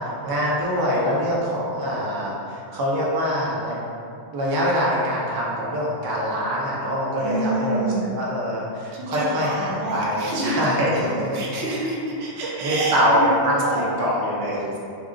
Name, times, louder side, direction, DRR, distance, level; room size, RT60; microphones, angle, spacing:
voice 1, 0.0-3.8 4.3-11.0 11.3-11.4 12.6-14.6, equal, 30° right, -6 dB, 0.4 m, -24 dB
voice 2, 7.2-8.1 8.9-11.1 11.3-13.9 14.5-14.8, right 1 dB, 80° right, -3 dB, 0.9 m, -27 dB
2.4 x 2.3 x 3.8 m, 2.5 s
omnidirectional pair, 1.1 m